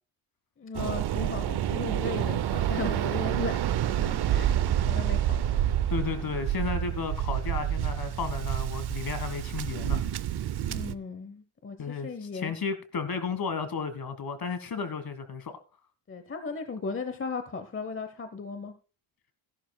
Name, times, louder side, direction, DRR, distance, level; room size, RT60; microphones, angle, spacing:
voice 1, 0.6-3.6 3.9-4.6 4.9-5.6 10.6-12.5 16.1-18.7, left 4 dB, 25° left, 0.9 m, -36 dB
Waves surf, 0.7-10.9, right 11 dB, 55° right, 0.7 m, -28 dB
voice 2, 5.9-10.0 11.8-15.6, left 5 dB, 45° left, 1.6 m, -33 dB
16.0 x 11.5 x 2.2 m
cardioid pair, 120°, 49 cm